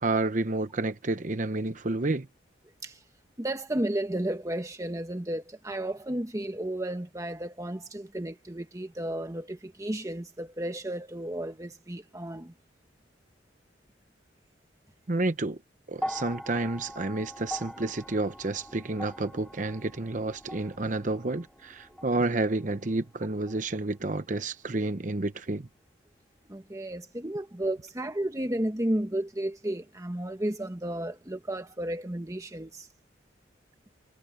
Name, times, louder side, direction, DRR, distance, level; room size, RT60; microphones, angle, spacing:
voice 1, 0.0-2.3 15.1-15.6 15.9-25.7, right 2 dB, 45° right, 0.9 m, -30 dB
voice 2, 3.4-12.5 16.0-16.1 26.5-32.9, right 1 dB, 20° right, 1.1 m, -33 dB
sound 1, 15.9-24.3 25.4-25.5, equal, ahead, 2.0 m, -42 dB
head